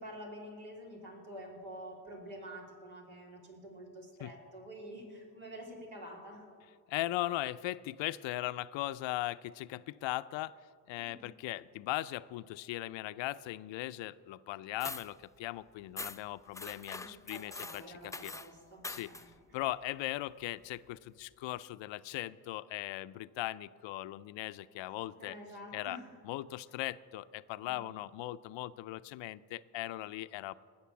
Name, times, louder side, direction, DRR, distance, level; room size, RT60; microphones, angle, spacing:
voice 1, 0.0-6.4 11.0-11.3 16.9-19.3 25.2-26.1 27.6-28.0, equal, 80° right, -2 dB, 3.3 m, -48 dB
voice 2, 6.9-10.6 10.9-18.3 18.9-19.1 19.5-25.4 25.7-26.0 26.2-30.5, left 16 dB, 75° left, 16 dB, 0.6 m, -39 dB
sound 1, 14.8-15.1 16.0-16.2 16.5-18.5 18.8-19.3, left 2 dB, 10° left, 0.4 m, -43 dB
19.5 x 6.7 x 7.0 m, 2.1 s
supercardioid pair, 50°, 46 cm